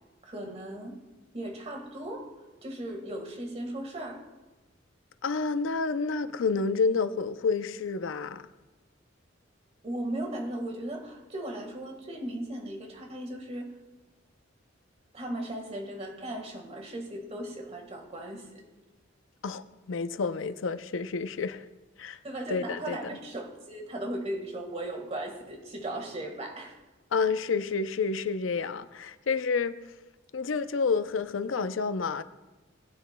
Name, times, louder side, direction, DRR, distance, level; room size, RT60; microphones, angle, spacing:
voice 1, 0.2-1.0 1.3-2.3 2.6-4.2 9.8-13.7 15.1-18.6 22.2-26.8, right 1 dB, 35° right, 1.6 m, -37 dB
voice 2, 5.2-8.4 19.4-21.6 22.0-22.2 22.5-23.2 27.1-29.8 30.3-32.2, left 4 dB, 90° left, 0.5 m, -29 dB
20.0 x 9.3 x 2.2 m
head